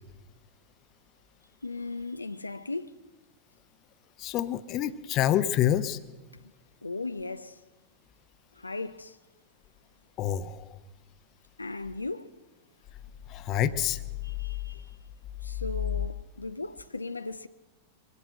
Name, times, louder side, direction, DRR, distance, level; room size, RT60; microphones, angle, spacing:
voice 1, 1.6-3.0 6.8-7.6 8.5-9.2 11.6-12.3 14.2-15.0 15.4-17.5, left 3 dB, 80° left, 0.6 m, -37 dB
voice 2, 4.2-6.0 10.2-10.7 13.3-14.0, left 11 dB, 35° left, 0.9 m, -27 dB
23.0 x 16.5 x 7.7 m
figure-of-eight pair, 90°, 0 cm